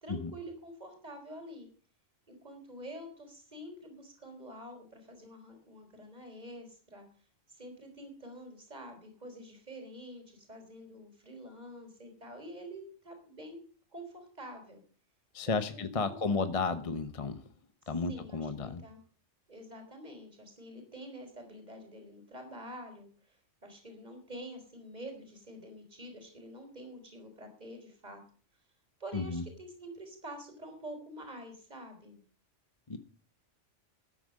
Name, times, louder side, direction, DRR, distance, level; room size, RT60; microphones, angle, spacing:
voice 1, 0.0-1.7 2.3-7.0 7.5-13.6 13.9-14.8 15.4-16.8 18.1-19.0 19.5-28.2 29.0-32.2, equal, 35° right, 4 dB, 4.2 m, -47 dB
voice 2, 15.3-17.4 17.9-18.8 29.1-29.4 32.9-33.0, left 4 dB, 30° left, 10 dB, 1.0 m, -33 dB
13.0 x 10.0 x 6.5 m, 0.42 s
omnidirectional pair, 1.3 m